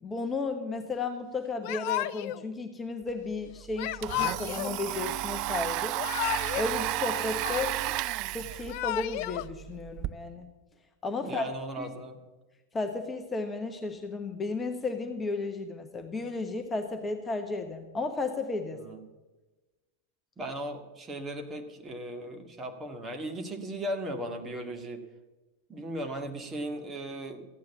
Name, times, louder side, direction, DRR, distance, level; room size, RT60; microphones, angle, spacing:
voice 1, 0.0-5.9 6.6-7.8 8.3-10.5 11.0-11.9 12.7-18.8, left 3 dB, 15° left, 5 dB, 1.1 m, -34 dB
Yell / Crying sobbing, 1.6-2.4 3.8-4.7 5.8-6.7 7.0-8.0 8.5-9.4, left 16 dB, 45° left, 0.4 m, -33 dB
Domestic sounds home sounds, 3.1-3.2 3.5-10.1, right 17 dB, 40° right, 0.5 m, -33 dB
voice 2, 11.2-12.2 18.7-19.0 20.4-25.0 25.7-27.5, right 1 dB, 20° right, 4 dB, 1.9 m, -37 dB
14.5 x 9.3 x 7.2 m, 1.2 s
figure-of-eight pair, 90°, 0 cm